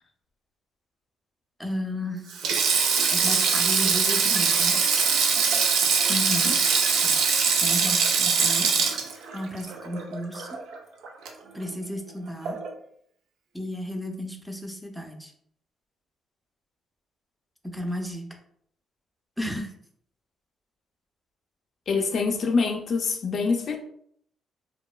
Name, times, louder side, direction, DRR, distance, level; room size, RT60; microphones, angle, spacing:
voice 1, 1.6-2.3 3.1-4.8 7.0-7.1 7.6-8.7 9.3-10.6 11.5-12.6 13.5-15.3 17.6-18.3 19.4-19.7, equal, ahead, 0.4 m, -33 dB
Sink (filling or washing), 2.3-10.8 11.0-11.3 12.4-12.7, right 5 dB, 85° right, 0.4 m, -22 dB
voice 2, 6.1-6.6 21.9-23.8, left 4 dB, 60° left, 0.4 m, -26 dB
2.9 x 2.1 x 2.2 m
cardioid pair, 90°, 0 cm